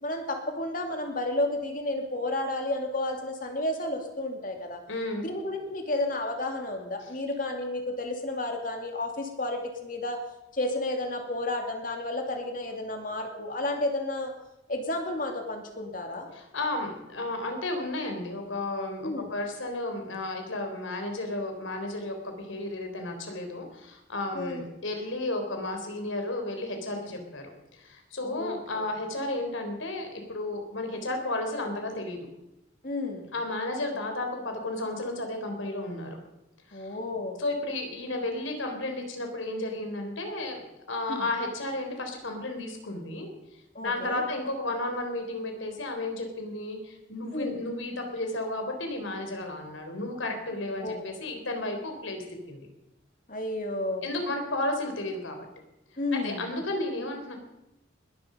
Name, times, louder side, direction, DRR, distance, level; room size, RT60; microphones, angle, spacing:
voice 1, 0.0-4.8 5.2-10.2 10.5-14.3 14.7-16.3 19.0-19.3 24.3-24.6 28.2-28.6 32.8-33.3 36.7-37.4 41.1-41.3 43.7-44.2 47.3-47.5 50.8-51.0 53.3-54.0 56.0-56.5, left 2 dB, 45° left, 4 dB, 2.6 m, -31 dB
voice 2, 4.8-5.3 7.0-7.1 16.3-32.3 33.3-36.2 36.7-36.9 37.4-40.6 40.9-43.3 43.8-52.7 54.0-55.4 56.1-57.4, left 2 dB, 80° left, 4 dB, 3.9 m, -33 dB
21.0 x 12.5 x 5.2 m, 0.92 s
head